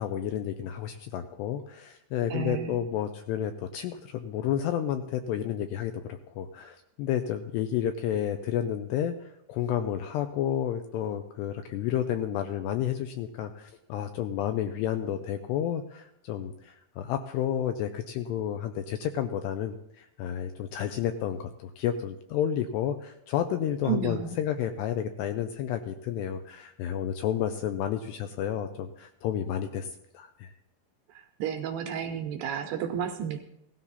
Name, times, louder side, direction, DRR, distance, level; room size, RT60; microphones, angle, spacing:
voice 1, 0.0-9.1 9.5-29.9 30.1-30.5, left 10 dB, 80° left, 7 dB, 2.5 m, -31 dB
voice 2, 2.3-2.8 23.9-24.4 31.4-33.4, right 8 dB, 75° right, 5 dB, 2.5 m, -31 dB
17.5 x 13.0 x 4.1 m, 0.79 s
omnidirectional pair, 5.5 m